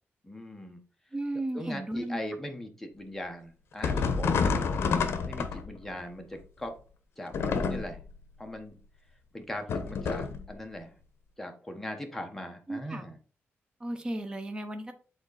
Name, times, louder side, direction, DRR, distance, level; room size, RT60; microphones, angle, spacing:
voice 1, 0.2-0.8 1.5-4.9 5.3-6.7 7.2-8.0 8.4-8.8 9.3-11.0 11.4-13.2, left 1 dB, 5° left, 3 dB, 1.2 m, -40 dB
voice 2, 1.1-2.2 12.7-13.0 13.8-14.9, right 1 dB, 20° right, 7 dB, 0.9 m, -34 dB
sound 1, 3.8-5.9 7.3-8.1 9.7-10.5, left 5 dB, 65° left, 0.9 m, -28 dB
8.0 x 3.9 x 4.0 m, 0.38 s
wide cardioid pair, 155°, 5 cm